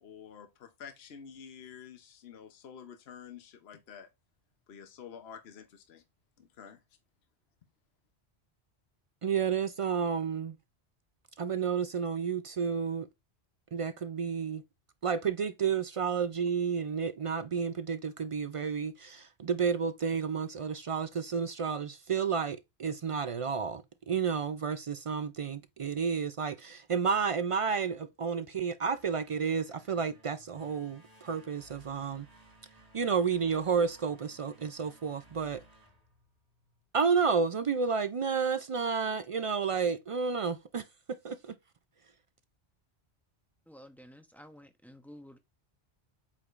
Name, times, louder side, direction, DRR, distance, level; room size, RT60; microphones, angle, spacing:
voice 1, 0.0-4.1 4.7-6.0 6.4-6.8, left 7 dB, 70° left, 1.0 m, -49 dB
voice 2, 9.2-10.6 11.4-13.1 13.7-14.6 15.0-32.3 32.9-35.6 36.9-40.8 41.2-41.5, right 6 dB, 65° right, 0.3 m, -31 dB
sound 1, 28.9-36.8, right 1 dB, 35° right, 1.4 m, -59 dB
voice 3, 43.7-45.4, equal, ahead, 0.7 m, -52 dB
8.4 x 4.9 x 2.5 m
omnidirectional pair, 1.1 m